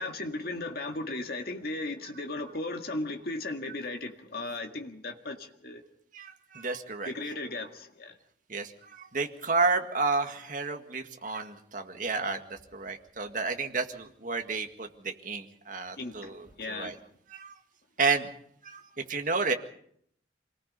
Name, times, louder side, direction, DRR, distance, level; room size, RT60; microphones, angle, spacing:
voice 1, 0.0-5.8 7.1-8.1 16.0-17.0, left 2 dB, 55° left, 4 dB, 1.9 m, -36 dB
voice 2, 6.1-7.1 8.5-17.0 17.3-17.5 18.0-18.3 18.6-18.8 19.1-19.5, right 4 dB, 45° right, 5 dB, 1.9 m, -31 dB
25.5 x 19.0 x 5.4 m, 0.67 s
head